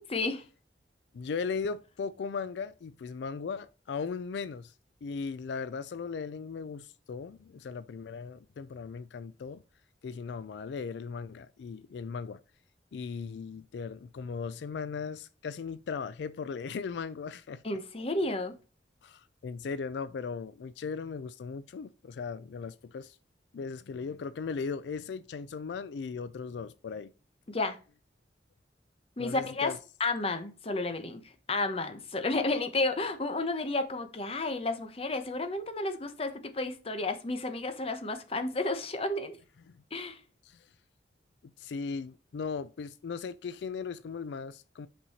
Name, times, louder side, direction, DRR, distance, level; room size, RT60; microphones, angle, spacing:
voice 1, 0.1-0.4 17.6-18.5 27.5-27.8 29.2-29.7 30.0-39.4 39.9-40.2, left 2 dB, 35° left, 0.8 m, -32 dB
voice 2, 1.1-4.7 5.0-9.6 10.0-12.4 12.9-17.6 19.0-23.2 23.5-27.1 29.2-29.8 40.4-40.7 41.4-44.9, left 5 dB, 80° left, 0.4 m, -37 dB
5.6 x 5.4 x 4.2 m
head